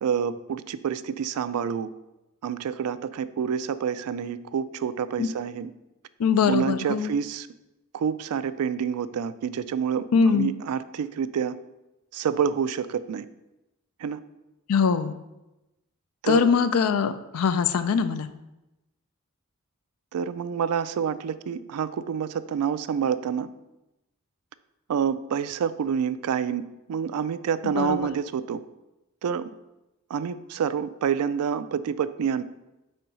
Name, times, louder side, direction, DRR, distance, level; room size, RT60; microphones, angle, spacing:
voice 1, 0.0-1.9 2.4-5.7 6.5-7.5 7.9-11.6 12.1-13.3 14.0-14.2 16.2-16.5 20.1-23.5 24.9-26.6 26.9-28.6 29.2-29.5 30.1-32.4, right 7 dB, 85° right, 13 dB, 0.3 m, -28 dB
voice 2, 6.2-7.1 10.1-10.5 14.7-15.2 16.3-18.3 27.6-28.1, left 6 dB, 80° left, 11 dB, 0.4 m, -22 dB
4.6 x 4.4 x 5.2 m, 0.97 s
head